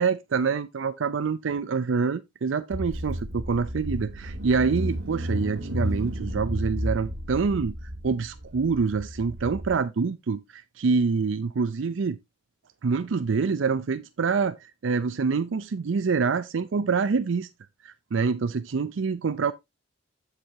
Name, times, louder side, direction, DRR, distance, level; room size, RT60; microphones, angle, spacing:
voice 1, 0.0-7.7 8.0-12.2 12.8-17.5 17.8-19.5, right 5 dB, 80° right, 0.5 m, -26 dB
Car / Engine, 2.7-9.7, equal, 60° right, 1.5 m, -32 dB
13.5 x 4.9 x 2.7 m
head